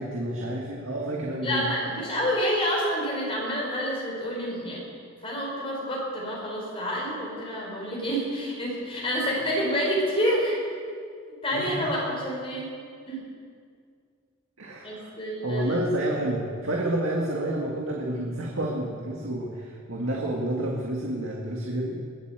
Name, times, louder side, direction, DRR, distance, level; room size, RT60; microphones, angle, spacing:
voice 1, 0.0-1.7 11.5-11.9 14.6-15.1 15.4-22.1, right 1 dB, 75° right, -2 dB, 2.0 m, -29 dB
voice 2, 1.4-4.8 5.2-10.6 11.4-12.7 13.1-13.2 14.8-15.7, equal, 25° left, -3 dB, 4.8 m, -28 dB
21.0 x 8.3 x 8.1 m, 2.2 s
head